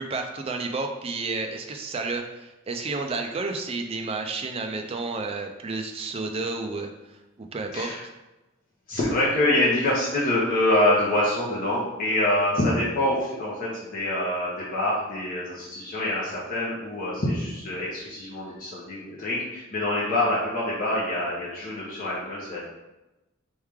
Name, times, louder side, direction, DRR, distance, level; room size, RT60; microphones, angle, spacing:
voice 1, 0.0-7.9, right 3 dB, 25° right, 4 dB, 0.4 m, -31 dB
voice 2, 8.9-22.6, left 1 dB, 40° left, -7 dB, 0.9 m, -25 dB
4.5 x 3.2 x 3.6 m, 1.0 s
head